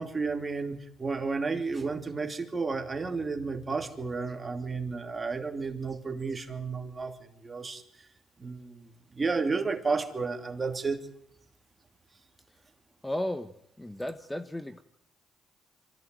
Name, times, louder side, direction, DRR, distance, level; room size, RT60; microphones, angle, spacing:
voice 1, 0.0-7.8 8.4-11.0, right 4 dB, 25° right, 6 dB, 2.9 m, -32 dB
voice 2, 13.0-13.5 13.8-14.8, left 1 dB, 10° left, 10 dB, 1.1 m, -34 dB
24.5 x 15.0 x 9.3 m, 0.73 s
cardioid pair, 90°, 0 cm